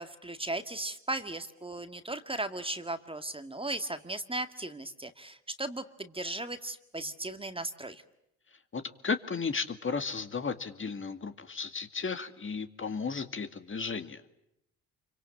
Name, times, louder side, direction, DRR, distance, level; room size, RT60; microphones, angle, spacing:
voice 1, 0.0-8.0, right 2 dB, 15° right, 9 dB, 2.0 m, -37 dB
voice 2, 8.7-14.2, left 5 dB, 35° left, 9 dB, 2.2 m, -34 dB
26.5 x 24.5 x 8.6 m, 0.82 s
hypercardioid pair, 65°, 36 cm